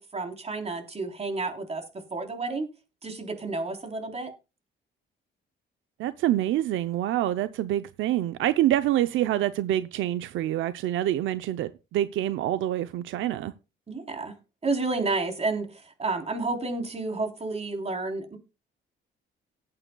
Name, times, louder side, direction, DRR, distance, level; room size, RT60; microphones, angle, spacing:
voice 1, 0.0-1.8 2.1-2.7 3.0-4.3 13.9-14.3 14.6-18.4, right 3 dB, 30° right, 3.7 m, -30 dB
voice 2, 6.0-13.5, right 13 dB, 85° right, 0.7 m, -26 dB
18.0 x 8.7 x 2.3 m
cardioid pair, 90°, 20 cm